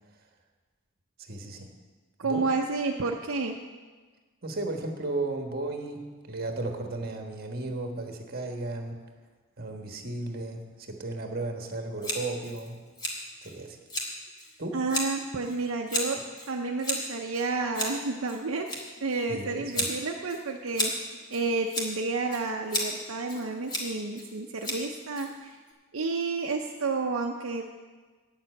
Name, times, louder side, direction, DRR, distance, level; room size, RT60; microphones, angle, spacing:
voice 1, 1.2-1.7 2.2-2.5 4.4-9.0 9.6-12.8 13.4-13.8 14.6-14.8 19.3-19.9, right 2 dB, 45° right, 4 dB, 1.3 m, -35 dB
voice 2, 2.2-3.6 14.7-16.2 16.5-18.7 19.0-20.9 21.3-25.6 25.9-27.7, right 3 dB, 70° right, 1 dB, 0.6 m, -30 dB
Scissors, 12.0-25.7, left 1 dB, 20° left, 1.5 m, -35 dB
9.1 x 7.3 x 7.7 m, 1.4 s
head